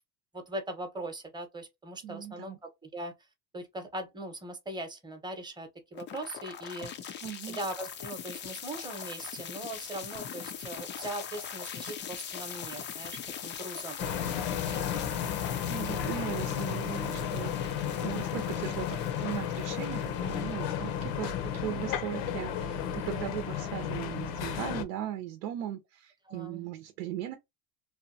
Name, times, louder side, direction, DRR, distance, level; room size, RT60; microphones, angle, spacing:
voice 1, 0.3-3.1 3.5-6.9 7.5-14.1 14.6-15.2 21.2-21.4 26.3-26.7, right 1 dB, 10° right, 0.8 m, -40 dB
voice 2, 2.0-2.6 7.2-7.6 15.7-27.4, right 11 dB, 75° right, 0.7 m, -38 dB
sound 1, 5.9-22.0, left 8 dB, 30° left, 0.3 m, -42 dB
sound 2, 14.0-24.8, left 8 dB, 75° left, 0.8 m, -33 dB
2.8 x 2.2 x 2.6 m
supercardioid pair, 110°, 44 cm